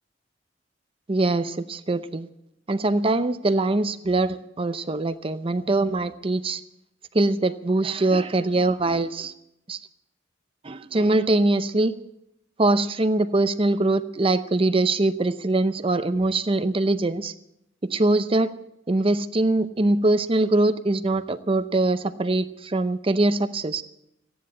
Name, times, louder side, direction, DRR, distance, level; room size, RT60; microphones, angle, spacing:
voice 1, 1.1-2.3 2.7-6.6 7.1-9.3 9.7-9.8 10.6-11.9 12.6-17.3 17.8-18.5 18.9-23.8, right 2 dB, 30° right, 11 dB, 0.6 m, -23 dB
15.0 x 10.0 x 8.5 m, 0.82 s
head